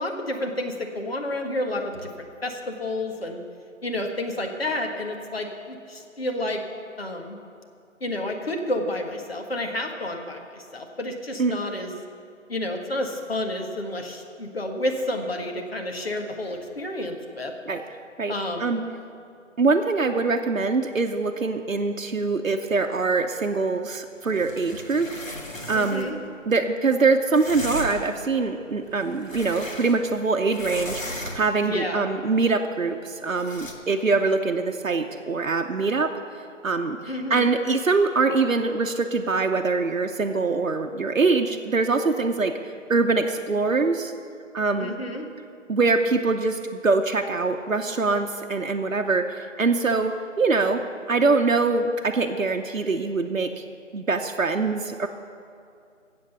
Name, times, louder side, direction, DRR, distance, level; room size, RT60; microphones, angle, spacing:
voice 1, 0.0-3.4 3.8-6.6 7.0-7.4 8.0-11.9 12.5-17.5 18.3-18.7 25.7-26.2 31.6-32.1 37.1-37.5 44.8-45.3, left 1 dB, 50° left, 3 dB, 1.7 m, -30 dB
voice 2, 19.6-25.1 25.7-26.1 26.5-36.1 36.6-42.6 42.9-44.1 44.5-44.9 45.7-53.6 53.9-55.1, right 3 dB, 85° right, 4 dB, 0.9 m, -23 dB
sound 1, 24.2-26.1 27.3-28.2 28.8-30.2 30.5-31.7 33.4-33.7, left 1 dB, 85° left, 2.0 m, -36 dB
14.5 x 8.0 x 6.8 m, 2.4 s
figure-of-eight pair, 165°, 39 cm